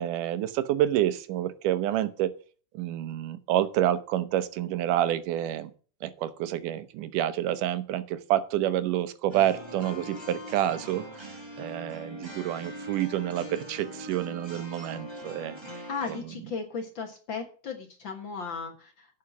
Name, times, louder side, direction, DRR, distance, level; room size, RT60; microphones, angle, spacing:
voice 1, 0.0-2.3 2.7-5.7 6.0-15.6, right 12 dB, 85° right, 12 dB, 2.4 m, -28 dB
sound 1, 9.3-16.2, equal, 10° right, 1.9 m, -42 dB
voice 2, 15.9-19.1, left 5 dB, 50° left, 4 dB, 1.7 m, -36 dB
9.8 x 5.8 x 7.1 m, 0.40 s
omnidirectional pair, 3.6 m